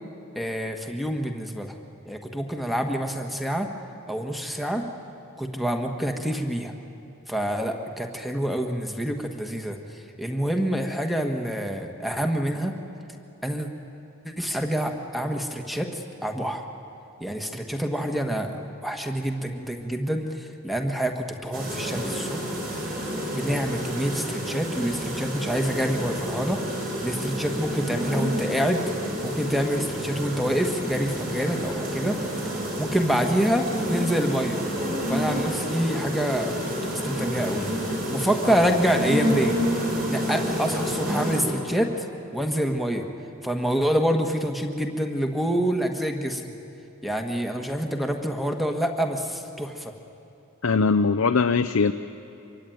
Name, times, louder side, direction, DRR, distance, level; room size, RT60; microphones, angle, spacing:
voice 1, 0.3-1.7 2.0-3.7 4.1-4.9 5.4-6.7 7.3-12.7 13.4-13.7 14.2-16.6 17.2-22.8 23.3-28.8 29.2-32.2 32.7-34.6 35.1-36.6 36.8-37.7 38.0-39.6 40.1-42.1 42.3-43.1 43.4-46.4 47.0-49.9, equal, ahead, 4 dB, 1.5 m, -27 dB
sound 1, 21.5-41.4, equal, 40° right, 5.6 m, -29 dB
voice 2, 50.6-51.9, left 4 dB, 75° left, 8 dB, 0.6 m, -21 dB
25.0 x 23.5 x 9.4 m, 2.8 s
head